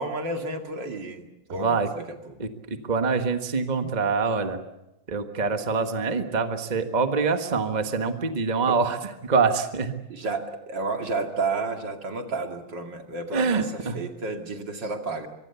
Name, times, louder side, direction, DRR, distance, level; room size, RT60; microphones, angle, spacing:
voice 1, 0.0-2.4 3.8-4.0 8.7-8.8 10.1-15.3, right 3 dB, 70° right, 4 dB, 3.1 m, -31 dB
voice 2, 2.4-4.6 5.1-9.0 9.2-10.0 13.3-14.0, right 5 dB, 25° right, 7 dB, 1.5 m, -25 dB
24.5 x 24.0 x 7.0 m, 0.96 s
omnidirectional pair, 2.0 m